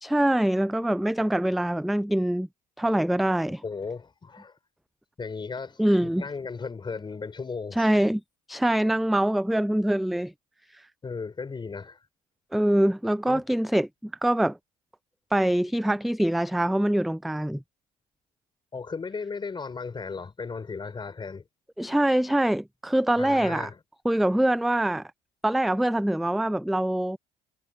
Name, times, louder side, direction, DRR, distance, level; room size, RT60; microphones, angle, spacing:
voice 1, 0.0-2.5 2.8-3.6 5.8-6.2 7.7-8.2 8.5-10.3 10.7-10.9 12.5-14.6 15.3-17.6 21.8-23.7 24.0-25.1 25.4-27.2, right 1 dB, ahead, 0.4 m, -24 dB
voice 2, 3.6-4.5 5.2-7.9 11.0-12.0 13.3-13.4 18.7-21.4 23.2-23.8, left 4 dB, 25° left, 4.5 m, -36 dB
supercardioid pair, 80°, 18 cm